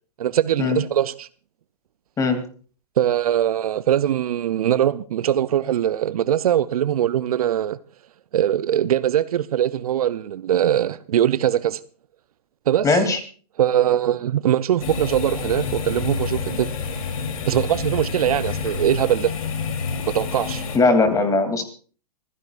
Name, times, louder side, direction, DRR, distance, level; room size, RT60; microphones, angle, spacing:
voice 1, 0.2-1.3 3.0-7.8 8.3-11.8 12.7-12.9 13.6-16.7 17.5-19.3 20.1-20.6, right 11 dB, 65° right, 0.6 m, -21 dB
voice 2, 12.8-13.2 20.7-21.6, left 3 dB, 15° left, 2.8 m, -19 dB
sound 1, 14.8-20.8, left 5 dB, 60° left, 3.2 m, -28 dB
26.0 x 15.5 x 2.5 m
hypercardioid pair, 120°, 20 cm